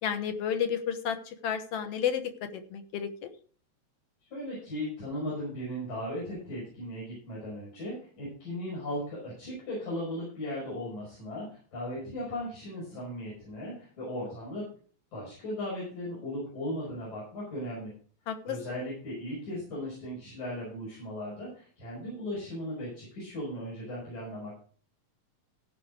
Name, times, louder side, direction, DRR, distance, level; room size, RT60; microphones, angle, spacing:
voice 1, 0.0-2.2 2.5-3.3 18.3-18.6, left 8 dB, 65° left, 9 dB, 2.0 m, -31 dB
voice 2, 4.3-14.7 15.1-17.9 18.5-24.6, left 1 dB, 80° left, -6 dB, 6.8 m, -37 dB
16.0 x 5.9 x 4.9 m, 0.43 s
omnidirectional pair, 3.3 m